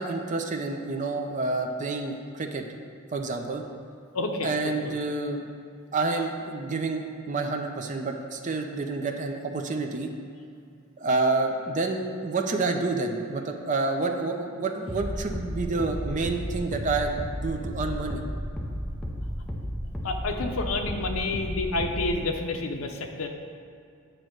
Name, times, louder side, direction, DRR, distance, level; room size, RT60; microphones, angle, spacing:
voice 1, 0.0-2.7 3.1-3.6 4.4-5.4 5.9-10.1 11.0-17.1 17.4-18.2 18.6-18.7, right 3 dB, 35° right, 3 dB, 0.6 m, -28 dB
voice 2, 4.1-4.5 20.0-23.3, left 2 dB, 85° left, 4 dB, 0.7 m, -29 dB
sound 1, 14.9-22.3, equal, 5° left, 0.7 m, -33 dB
9.0 x 3.1 x 6.3 m, 2.4 s
head